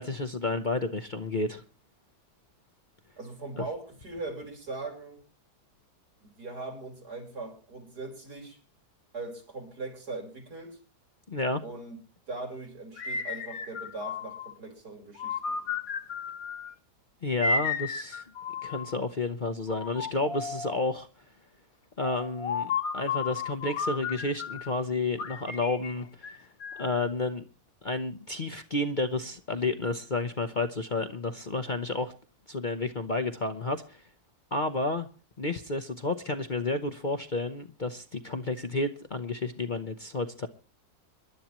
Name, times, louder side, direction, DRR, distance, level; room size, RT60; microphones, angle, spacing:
voice 1, 0.0-1.6 3.6-3.7 11.3-11.6 17.2-18.3 18.6-21.1 22.0-26.4 26.8-27.4 27.8-32.1 32.5-34.0 34.5-35.1 35.4-40.5, left 2 dB, 40° left, 0.8 m, -31 dB
voice 2, 3.2-5.2 6.2-8.6 9.1-10.8 11.6-12.0 12.3-15.6, right 3 dB, 80° right, 4.6 m, -40 dB
sound 1, 13.0-14.6 15.2-16.7 17.4-19.0 19.7-20.9 22.0-24.7 25.2-27.0, left 5 dB, 65° left, 1.6 m, -34 dB
26.5 x 11.5 x 3.0 m
omnidirectional pair, 1.7 m